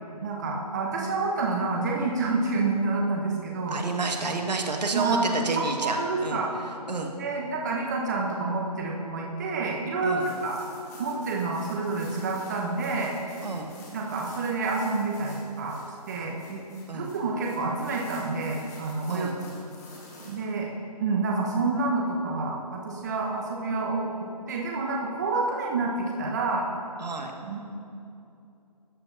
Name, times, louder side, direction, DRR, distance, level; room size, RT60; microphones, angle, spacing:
voice 1, 0.2-3.8 4.9-6.5 7.2-10.6 11.0-13.1 13.9-15.8 16.1-16.6 16.9-19.3 20.2-20.7 21.0-24.1 24.5-26.7 27.4-27.6, right 3 dB, 25° right, -1 dB, 1.0 m, -28 dB
voice 2, 3.7-6.0 6.2-6.4 6.9-7.1 10.0-10.3 13.4-13.7 16.9-17.1 19.1-19.3 27.0-27.3, right 3 dB, 85° right, 3 dB, 1.7 m, -30 dB
sound 1, 10.2-20.4, left 2 dB, 25° left, 1.8 m, -50 dB
13.0 x 8.0 x 4.0 m, 2.7 s
hypercardioid pair, 170°, 21 cm